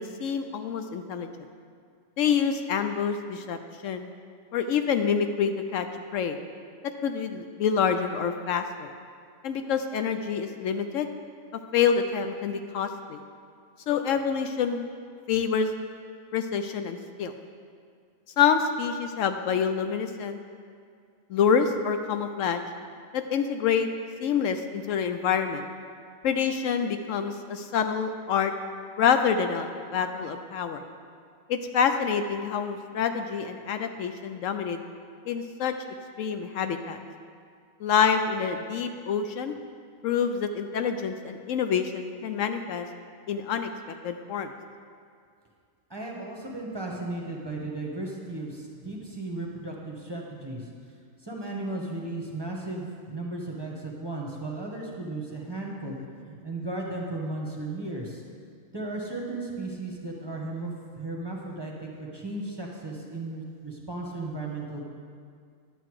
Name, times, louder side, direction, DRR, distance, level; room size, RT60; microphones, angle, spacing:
voice 1, 0.2-1.3 2.2-3.6 3.8-4.1 4.5-5.9 6.1-6.4 7.0-8.9 9.4-11.1 11.7-13.2 13.9-14.8 15.3-15.7 16.3-17.3 18.4-20.4 21.3-22.6 23.1-23.9 24.2-25.6 26.2-28.5 29.0-30.8 31.5-34.8 35.3-35.7 36.2-37.0 37.8-39.5 40.0-42.9 43.3-43.7 44.0-44.5, left 7 dB, 75° left, 7 dB, 0.9 m, -27 dB
voice 2, 45.9-50.7 51.2-56.0 56.2-58.2 58.7-64.8, right 2 dB, 20° right, -2 dB, 1.1 m, -35 dB
11.0 x 7.9 x 4.7 m, 2.2 s
omnidirectional pair, 1.4 m